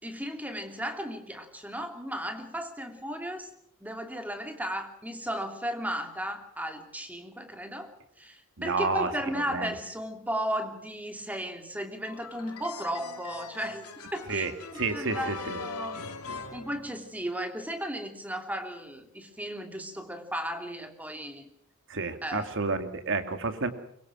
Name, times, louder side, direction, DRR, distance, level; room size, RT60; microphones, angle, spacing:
voice 1, 0.0-3.5 3.8-7.9 8.2-14.5 14.7-16.0 16.5-21.5 22.2-22.6, equal, 5° right, 5 dB, 2.9 m, -35 dB
voice 2, 8.6-9.1 9.5-9.7 14.3-14.5 14.8-15.6 21.9-23.7, right 3 dB, 60° right, 8 dB, 2.3 m, -30 dB
sound 1, 12.0-17.4, left 4 dB, 85° left, 3.0 m, -42 dB
24.0 x 23.0 x 6.2 m, 0.72 s
head